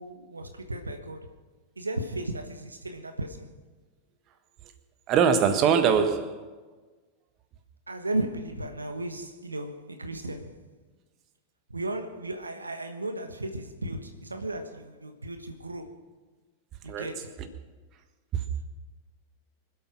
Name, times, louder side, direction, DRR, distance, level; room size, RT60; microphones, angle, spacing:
voice 1, 0.0-1.3 1.8-3.5 7.9-10.6 11.7-16.1 16.8-17.4, right 1 dB, 80° right, 1.2 m, -35 dB
voice 2, 5.1-6.4 16.9-17.1 17.4-17.5 18.3-18.4, right 7 dB, 35° right, 1.4 m, -22 dB
25.5 x 8.5 x 6.0 m
figure-of-eight pair, 90°, 0 cm